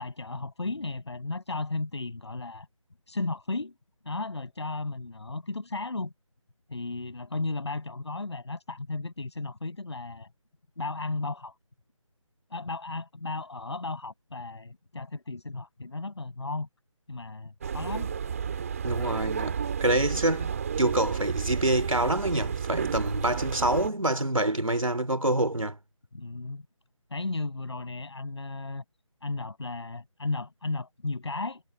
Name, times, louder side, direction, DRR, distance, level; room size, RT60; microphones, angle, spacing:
voice 1, 0.0-2.7 3.1-3.7 4.0-6.1 6.7-10.3 10.8-11.5 12.5-16.7 17.1-18.1 26.1-26.6 27.1-28.8 29.2-31.6, left 3 dB, 55° left, 6.6 m, -34 dB
sound 1, 17.6-23.9, right 7 dB, 25° right, 3.3 m, -32 dB
voice 2, 18.8-25.8, right 1 dB, 80° right, 2.8 m, -26 dB
figure-of-eight pair, 155°, 17 cm